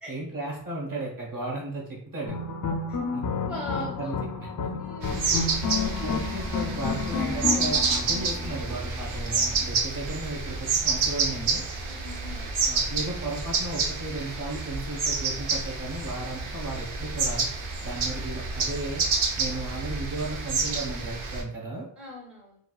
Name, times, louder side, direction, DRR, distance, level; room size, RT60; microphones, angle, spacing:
voice 1, 0.1-2.4 3.1-3.2 3.7-4.5 6.0-11.6 12.6-17.5 17.8-19.0 19.4-21.8, right 2 dB, 45° right, -2 dB, 1.1 m, -35 dB
sound 1, 2.3-8.9, left 5 dB, 45° left, 0.4 m, -30 dB
voice 2, 3.5-4.1 4.8-5.5 11.9-12.4 22.0-22.6, left 1 dB, 5° right, -2 dB, 0.6 m, -39 dB
sound 2, 5.0-21.4, right 4 dB, 85° right, 0.7 m, -29 dB
4.5 x 2.4 x 2.3 m, 0.65 s
wide cardioid pair, 180°, 46 cm